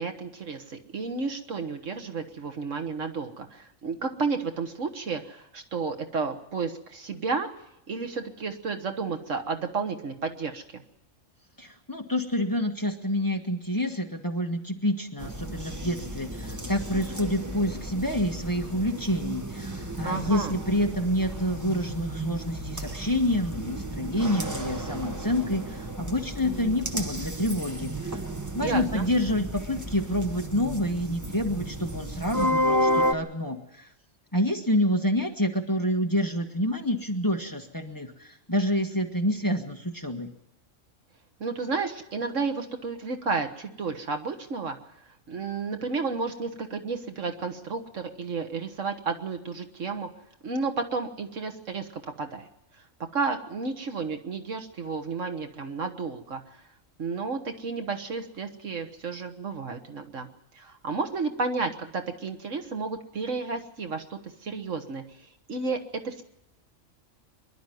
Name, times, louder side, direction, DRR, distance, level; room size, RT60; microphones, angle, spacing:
voice 1, 0.0-7.5 7.9-10.8 20.0-20.6 28.6-29.1 41.4-44.8 45.3-50.1 50.4-52.5 53.1-56.4 57.0-60.3 60.6-65.0 65.5-65.8 66.0-66.2, right 4 dB, 70° right, 5 dB, 1.8 m, -32 dB
voice 2, 11.6-28.2 28.5-33.9 34.3-40.3, left 1 dB, 15° left, 3 dB, 1.5 m, -28 dB
sound 1, 15.2-33.1, equal, 15° right, 0.9 m, -32 dB
24.5 x 11.5 x 9.3 m, 0.82 s
omnidirectional pair, 1.3 m